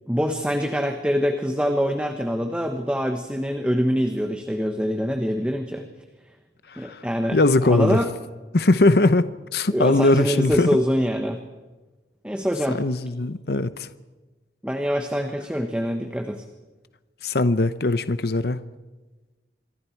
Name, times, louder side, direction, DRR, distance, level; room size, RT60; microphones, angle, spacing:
voice 1, 0.1-5.8 6.8-7.4 7.6-8.1 9.7-11.4 12.2-12.8 14.6-16.4, equal, 5° right, 5 dB, 1.2 m, -24 dB
voice 2, 6.7-7.0 7.3-8.0 8.5-10.7 12.7-13.9 17.2-18.6, left 2 dB, 60° left, 13 dB, 0.8 m, -20 dB
27.0 x 23.0 x 4.6 m, 1.2 s
head